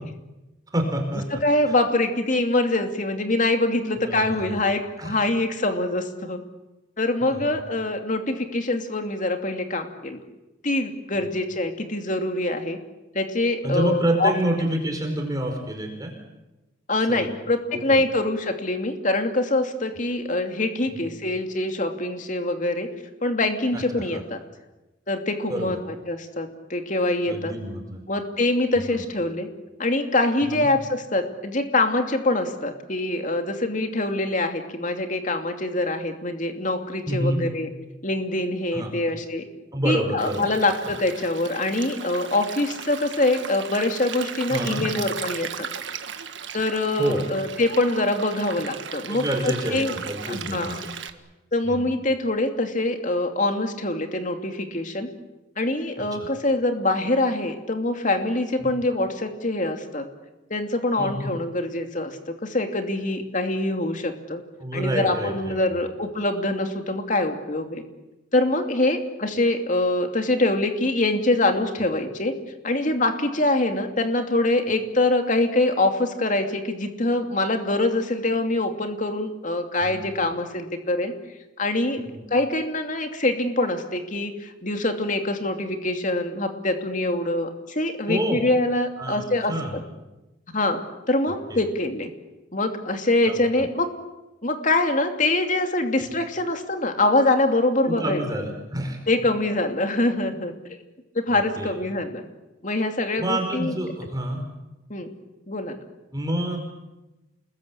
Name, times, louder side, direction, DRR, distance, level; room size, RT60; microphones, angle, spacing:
voice 1, 0.7-1.8 4.0-4.6 5.0-5.2 7.2-7.5 11.1-11.3 13.6-16.1 17.1-17.3 17.7-18.0 20.9-21.1 23.7-24.2 25.5-25.8 27.3-28.0 28.9-29.0 30.4-30.7 37.1-37.4 38.7-38.9 39.7-40.5 44.5-44.8 47.0-47.2 49.1-50.9 51.6-51.9 56.0-56.1 58.6-58.7 61.0-61.4 64.6-65.8 79.8-80.0 82.0-82.2 88.1-88.4 89.0-89.8 91.5-91.6 93.2-93.6 97.8-99.0 101.3-101.8 103.2-104.4 106.1-106.7, right 1 dB, 20° right, 2 dB, 4.8 m, -28 dB
voice 2, 1.3-6.4 7.0-10.2 10.6-12.8 13.1-14.3 16.9-22.9 23.2-24.4 25.1-25.8 26.1-27.5 28.1-29.5 29.8-37.7 38.0-39.4 39.8-45.7 46.5-49.2 49.7-49.9 50.3-50.8 51.5-55.1 55.6-60.1 60.5-64.4 64.7-67.8 68.3-72.4 72.6-81.1 81.6-82.0 82.3-89.5 90.5-90.8 91.1-92.1 92.5-93.9 94.4-98.2 99.1-100.5 101.1-102.2 102.6-103.7 104.9-105.1 105.5-105.8, left 2 dB, 40° left, 6 dB, 2.8 m, -24 dB
Stream, 40.2-51.1, right 7 dB, 65° right, 1.8 m, -36 dB
29.0 x 21.0 x 8.6 m, 1.0 s
head